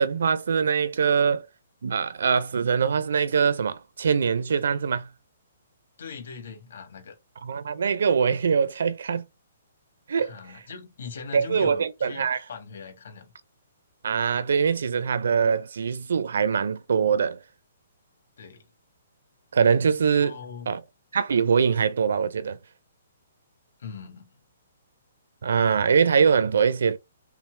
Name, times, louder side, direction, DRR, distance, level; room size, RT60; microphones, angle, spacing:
voice 1, 0.0-1.5 1.8-5.1 7.4-9.2 10.1-10.4 11.3-12.4 14.0-17.4 19.5-20.4 20.7-20.8 21.1-22.6 25.4-27.0, right 6 dB, 70° right, 0.5 m, -23 dB
voice 2, 6.0-7.1 10.2-13.3 18.4-18.7 20.2-20.7 23.8-24.3, left 5 dB, 60° left, 1.6 m, -41 dB
5.7 x 2.1 x 3.2 m
hypercardioid pair, 175°, 0 cm